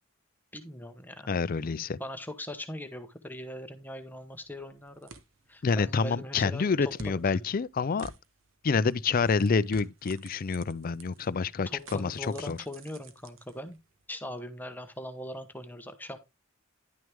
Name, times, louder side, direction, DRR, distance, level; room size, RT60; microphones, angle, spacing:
voice 1, 0.5-1.3 2.0-5.1 5.5-7.4 11.7-13.8 14.1-16.2, left 1 dB, 10° left, 1.0 m, -40 dB
voice 2, 1.3-2.0 5.6-8.1 8.6-12.6, left 5 dB, 45° left, 0.4 m, -28 dB
sound 1, 3.7-14.0, right 3 dB, 75° right, 1.2 m, -53 dB
11.0 x 6.2 x 3.5 m
head